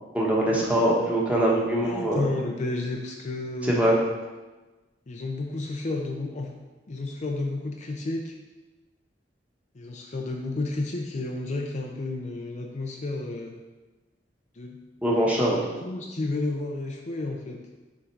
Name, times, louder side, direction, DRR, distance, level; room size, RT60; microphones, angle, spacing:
voice 1, 0.1-2.2 3.6-4.0 15.0-15.6, right 1 dB, 10° right, -4 dB, 1.2 m, -23 dB
voice 2, 1.8-4.0 5.1-6.5 6.9-8.3 9.7-13.5 14.6-14.8 15.8-17.6, left 2 dB, 40° left, 1 dB, 0.5 m, -31 dB
6.3 x 3.6 x 4.5 m, 1.2 s
head